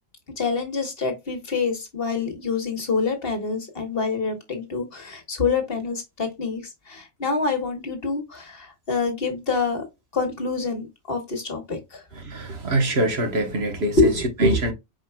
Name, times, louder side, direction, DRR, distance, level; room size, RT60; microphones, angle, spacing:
voice 1, 0.4-6.6 6.9-9.8 10.1-12.0 14.0-14.3, left 4 dB, 45° left, 1.4 m, -26 dB
voice 2, 12.2-14.1 14.4-14.7, right 1 dB, 55° right, 1.3 m, -23 dB
5.0 x 4.4 x 2.2 m
omnidirectional pair, 1.4 m